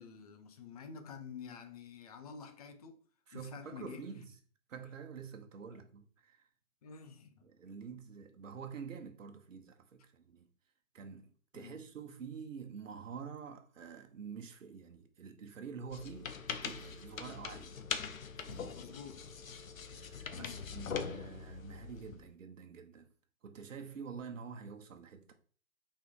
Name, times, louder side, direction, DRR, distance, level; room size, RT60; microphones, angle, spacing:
voice 1, 0.0-3.0 3.3-4.0 5.7-5.8 6.8-7.5 11.5-11.8 18.3-19.3 20.3-20.6, left 6 dB, 25° left, 0.7 m, -49 dB
voice 2, 3.3-4.3 4.7-6.5 7.4-10.5 10.9-17.8 18.4-18.7 19.8-23.1 23.4-25.3, right 6 dB, 60° right, 1.2 m, -47 dB
Telephone, 15.6-20.6, right 1 dB, 5° right, 1.0 m, -60 dB
sound 1, 15.9-22.2, left 6 dB, 65° left, 0.9 m, -42 dB
5.7 x 4.4 x 3.7 m
figure-of-eight pair, 135°, 43 cm